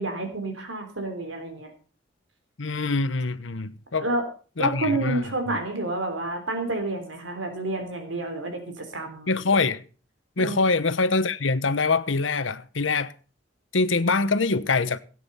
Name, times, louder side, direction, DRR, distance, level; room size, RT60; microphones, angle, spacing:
voice 1, 0.0-1.7 4.0-4.3 4.6-9.3 10.4-10.6, right 2 dB, 85° right, 3.6 m, -29 dB
voice 2, 2.6-4.1 4.6-5.6 9.3-9.8 10.4-13.1 13.7-15.0, left 3 dB, 90° left, 1.1 m, -24 dB
17.0 x 9.2 x 5.6 m
head